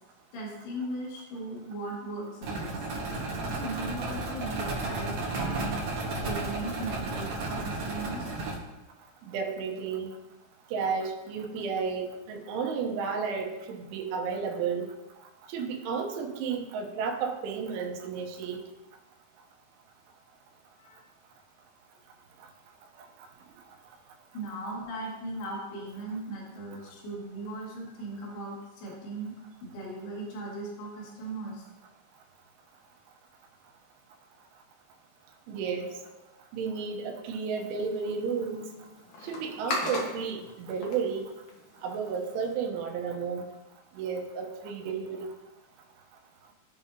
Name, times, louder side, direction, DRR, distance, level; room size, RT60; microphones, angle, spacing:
voice 1, 0.3-2.9 3.5-5.8 6.2-8.4 20.8-21.0 24.3-29.3 29.6-31.7, right 2 dB, 60° left, -4 dB, 4.0 m, -38 dB
sound 1, 2.4-8.5, right 2 dB, 65° right, 1.8 m, -33 dB
voice 2, 9.2-10.1 10.7-14.9 15.5-18.6 35.5-35.9 36.5-38.7 39.2-41.3 41.8-43.5 44.0-45.3, right 5 dB, 80° right, 3 dB, 3.3 m, -32 dB
sound 2, 37.4-42.5, left 1 dB, 85° left, 1.5 m, -39 dB
16.0 x 5.4 x 2.8 m, 1.1 s
omnidirectional pair, 5.6 m